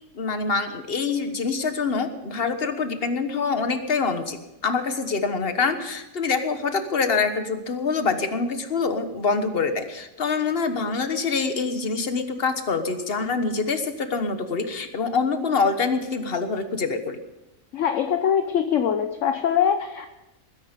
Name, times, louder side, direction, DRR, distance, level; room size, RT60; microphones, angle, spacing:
voice 1, 0.1-17.2, left 4 dB, 45° left, 8 dB, 1.5 m, -25 dB
voice 2, 17.7-20.1, left 8 dB, 65° left, 7 dB, 1.1 m, -23 dB
20.5 x 10.5 x 5.2 m, 0.98 s
omnidirectional pair, 1.5 m